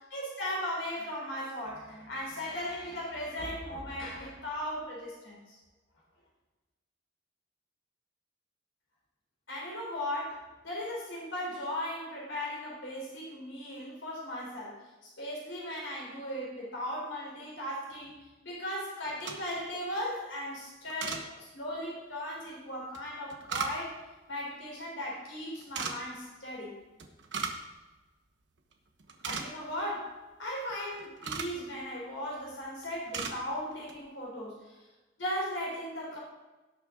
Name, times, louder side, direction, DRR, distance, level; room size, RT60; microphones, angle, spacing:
voice 1, 0.0-5.6 9.5-14.8 15.2-18.1 18.4-24.0 24.3-26.8 29.2-34.8 35.2-36.2, left 1 dB, 70° left, -3 dB, 3.6 m, -37 dB
sound 1, 19.1-19.7 20.9-21.2 22.9-24.1 25.6-26.0 27.0-27.7 28.0-28.1 28.6-28.7 29.0-29.8 30.7-31.6 32.3-32.6 32.8-33.4 33.7-34.0, right 5 dB, 65° right, 1.2 m, -37 dB
17.0 x 6.6 x 3.8 m, 1.2 s
head